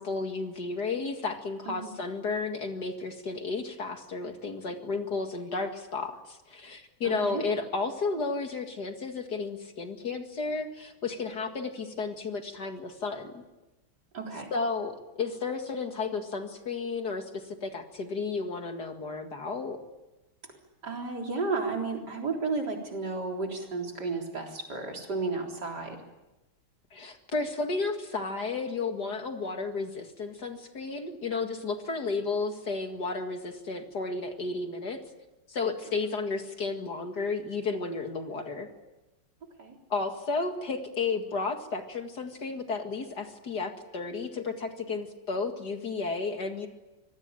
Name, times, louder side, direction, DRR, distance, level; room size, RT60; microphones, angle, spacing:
voice 1, 0.0-13.4 14.5-19.8 26.9-35.0 35.5-38.7 39.9-46.7, left 4 dB, 55° left, 5 dB, 2.5 m, -33 dB
voice 2, 1.7-2.0 7.0-7.4 14.1-14.5 20.5-20.6 20.8-26.0 39.6-39.8, right 3 dB, 55° right, 1 dB, 4.4 m, -33 dB
26.0 x 20.5 x 8.9 m, 1.0 s
omnidirectional pair, 2.2 m